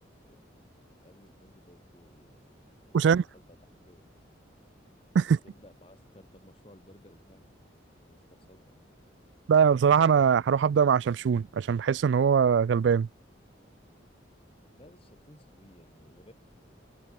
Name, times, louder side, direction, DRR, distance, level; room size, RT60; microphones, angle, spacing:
voice 1, 0.9-2.5 2.9-3.6 3.9-4.2 5.2-7.6 8.0-8.8 14.7-16.3, left 1 dB, 30° left, 6.7 m, -57 dB
voice 2, 9.5-13.1, right 7 dB, 70° right, 0.3 m, -22 dB
head